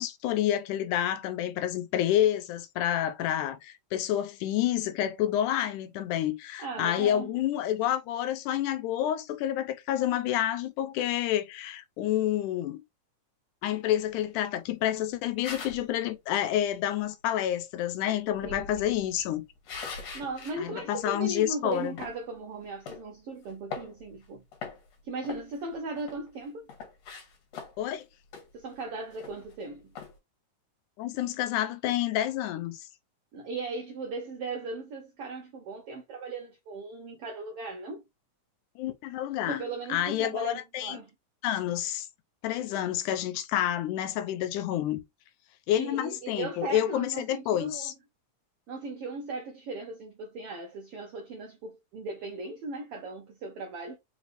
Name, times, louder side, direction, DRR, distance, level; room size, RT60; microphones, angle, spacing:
voice 1, 0.0-12.8 13.6-19.4 20.6-22.0 27.8-28.0 31.0-32.9 38.8-39.6 39.9-41.0 41.4-42.1 42.4-45.0 45.7-47.9, left 12 dB, 85° left, 2.2 m, -29 dB
voice 2, 6.6-7.4 18.4-18.9 20.1-24.4 25.0-26.7 28.5-29.9 33.3-38.0 39.3-41.1 45.7-47.9 48.7-54.0, right 3 dB, 80° right, 1.3 m, -38 dB
sound 1, 15.4-15.9 18.3-20.6 21.0-21.1 21.7-22.2 22.8-23.0 23.5-24.3 24.5-24.9 25.2-26.3 26.7-27.9 28.3-28.5 28.8-28.9 29.1-29.5 30.0-30.1, left 5 dB, 65° left, 2.4 m, -41 dB
5.2 x 3.3 x 2.5 m
omnidirectional pair, 3.5 m